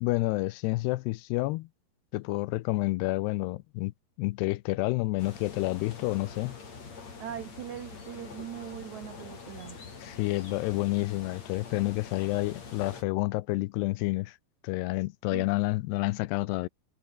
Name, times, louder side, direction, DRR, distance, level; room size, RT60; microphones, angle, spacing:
voice 1, 0.0-1.7 2.1-3.9 4.2-6.6 10.0-14.4 14.6-16.7, left 20 dB, 85° left, 2.6 m, -29 dB
sound 1, 5.2-13.0, left 5 dB, 40° left, 5.3 m, -45 dB
voice 2, 7.2-9.8 15.3-15.5, right 11 dB, 80° right, 1.6 m, -40 dB
omnidirectional pair, 4.9 m